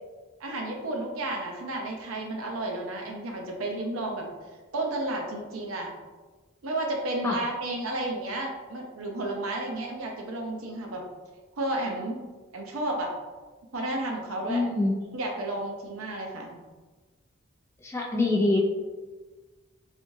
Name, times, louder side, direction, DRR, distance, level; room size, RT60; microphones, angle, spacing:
voice 1, 0.4-4.3 4.7-5.9 6.6-11.0 11.6-12.2 12.5-13.1 13.7-14.6 15.1-16.5, right 1 dB, 85° right, 1 dB, 0.7 m, -32 dB
voice 2, 14.5-15.0 17.8-18.6, left 2 dB, 15° left, -1 dB, 0.3 m, -25 dB
3.4 x 2.6 x 2.6 m, 1.3 s
head